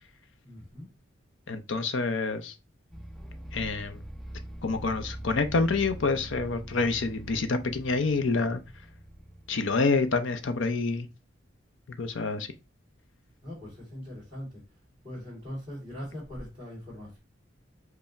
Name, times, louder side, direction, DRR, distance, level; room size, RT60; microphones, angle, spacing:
voice 1, 0.4-0.9 13.4-14.6 15.0-17.2, equal, 20° right, 2.4 m, -41 dB
voice 2, 1.5-2.5 3.5-4.0 4.6-8.6 9.5-11.1 12.0-12.5, left 3 dB, 70° left, 0.6 m, -27 dB
sound 1, 2.9-10.8, right 1 dB, ahead, 0.3 m, -43 dB
5.6 x 2.1 x 4.1 m
head